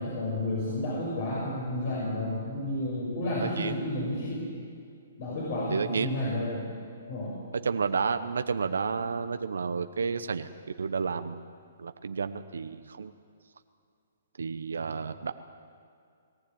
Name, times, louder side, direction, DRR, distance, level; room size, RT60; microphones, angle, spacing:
voice 1, 0.0-4.5 5.2-6.6 7.1-7.4, left 1 dB, 50° left, -5 dB, 6.5 m, -31 dB
voice 2, 3.4-3.7 5.7-6.1 7.6-10.5 10.8-11.4 11.8-13.1 14.4-15.3, right 5 dB, 85° right, 9 dB, 0.9 m, -31 dB
22.0 x 15.5 x 8.7 m, 2.3 s
hypercardioid pair, 150°, 0 cm